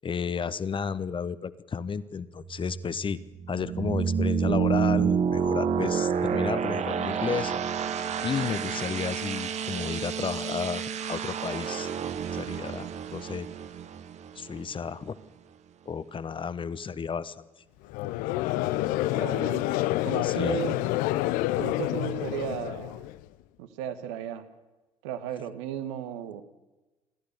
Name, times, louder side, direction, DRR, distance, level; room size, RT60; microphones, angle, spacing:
voice 1, 0.0-3.2 3.5-7.5 8.2-11.9 12.3-13.5 14.3-15.2 15.9-17.3 20.2-20.6, left 6 dB, 35° left, 16 dB, 1.1 m, -32 dB
sound 1, 2.4-15.1, right 7 dB, 45° right, 1.2 m, -29 dB
Conversation / Crowd, 17.9-23.2, left 16 dB, 60° left, 0.6 m, -28 dB
voice 2, 19.1-19.7 20.0-20.8 21.6-23.1 23.6-24.4 25.0-26.4, right 9 dB, 70° right, 10 dB, 1.4 m, -35 dB
29.0 x 13.5 x 6.8 m, 1.1 s
figure-of-eight pair, 50°, 16 cm